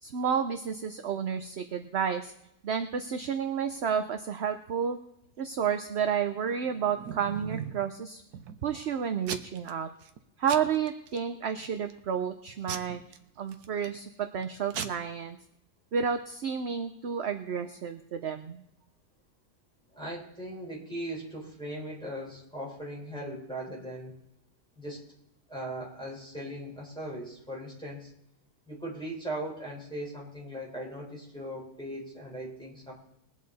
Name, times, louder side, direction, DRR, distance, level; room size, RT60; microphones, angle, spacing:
voice 1, 0.0-2.3 2.6-5.0 5.4-8.2 8.6-9.9 10.4-13.0 13.4-15.4 15.9-18.6, right 7 dB, 55° right, 7 dB, 0.8 m, -31 dB
Packing tape duct tape / Tearing, 6.5-7.9 8.3-8.8 9.2-9.7 10.0-10.2 10.5-11.2 11.6-12.0 12.7-14.0 14.4-14.5 14.7-14.9, right 8 dB, 85° right, 1.4 m, -38 dB
voice 2, 19.9-24.2 24.8-25.0 25.5-28.1 28.7-32.9, right 1 dB, 5° left, -4 dB, 4.6 m, -39 dB
21.0 x 8.5 x 4.1 m, 0.80 s
omnidirectional pair, 1.6 m